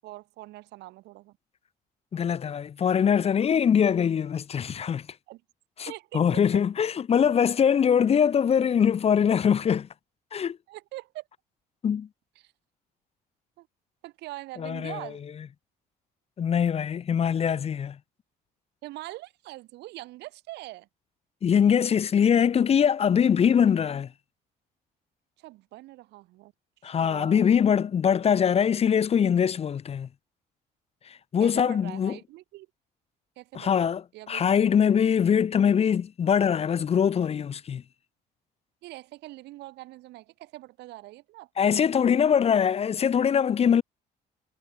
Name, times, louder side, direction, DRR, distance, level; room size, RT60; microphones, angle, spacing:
voice 1, 0.0-1.4 5.3-5.4 5.9-6.3 10.7-11.3 12.4-12.5 13.6-13.7 14.0-15.2 18.8-20.9 25.4-26.5 26.8-27.5 31.4-32.7 33.4-34.7 38.8-41.5, right 18 dB, 85° right, 6.5 m, -43 dB
voice 2, 2.1-5.1 5.8-9.9 10.3-10.6 11.8-12.1 14.6-15.0 16.4-18.0 21.4-24.1 26.8-30.1 31.1-32.2 33.5-37.8 41.6-43.8, left 7 dB, 35° left, 0.8 m, -23 dB
cardioid pair, 110°, 17 cm